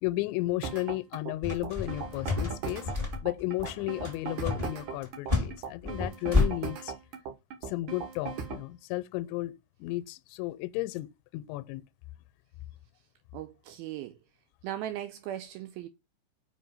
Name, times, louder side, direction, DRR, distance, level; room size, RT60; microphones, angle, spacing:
voice 1, 0.0-2.9 3.2-7.0 7.6-9.5 9.8-11.8, left 18 dB, 90° left, 2.9 m, -34 dB
sound 1, 0.6-8.7, right 6 dB, 60° right, 2.2 m, -38 dB
sound 2, 1.4-6.5, left 3 dB, 15° right, 1.2 m, -29 dB
voice 2, 13.3-14.2 14.6-15.9, right 12 dB, 80° right, 2.1 m, -38 dB
6.0 x 5.1 x 5.4 m
omnidirectional pair, 5.1 m